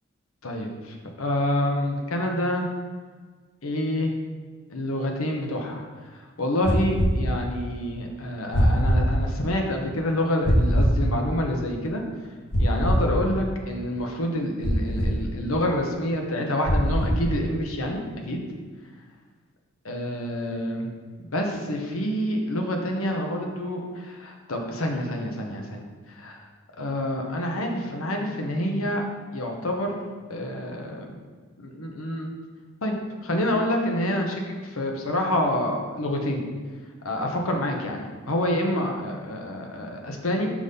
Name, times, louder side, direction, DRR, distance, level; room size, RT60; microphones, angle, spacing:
voice 1, 0.4-2.7 3.6-4.1 4.7-5.8 6.4-12.0 12.6-18.4 19.9-20.9 21.2-26.4 26.8-29.0 29.3-30.0 30.3-31.1 31.6-32.3 32.8-32.9 33.2-36.4 37.0-40.5, left 1 dB, 85° left, 2 dB, 1.1 m, -27 dB
sound 1, 6.6-7.1 8.5-9.0 10.4-10.9 12.5-13.1 14.6-15.1 16.6-17.2, equal, 55° left, 1.4 m, -21 dB
6.0 x 4.1 x 5.4 m, 1.5 s
head